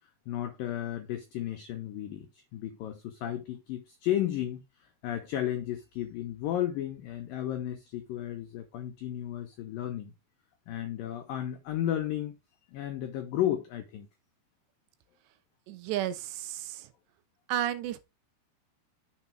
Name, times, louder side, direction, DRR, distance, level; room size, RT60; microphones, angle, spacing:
voice 1, 0.3-10.1 10.7-12.3 12.7-14.1, left 12 dB, 85° left, 2.0 m, -33 dB
voice 2, 15.7-16.9 17.5-18.0, right 11 dB, 80° right, 3.0 m, -32 dB
7.2 x 3.9 x 5.9 m
omnidirectional pair, 5.2 m